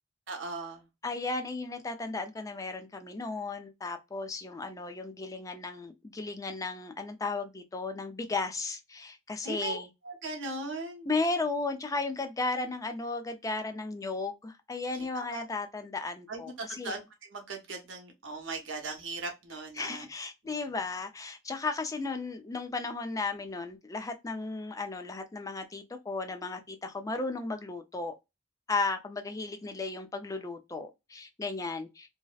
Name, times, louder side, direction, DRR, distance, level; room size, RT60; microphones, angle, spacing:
voice 1, 0.3-0.9 9.4-9.8 10.0-11.1 14.9-15.4 16.3-17.0 17.3-20.1 20.4-20.7, right 3 dB, 70° right, 0.8 m, -38 dB
voice 2, 1.0-9.9 11.1-17.0 19.8-28.1 28.7-32.2, left 3 dB, 20° left, 0.4 m, -35 dB
2.7 x 2.0 x 2.3 m
head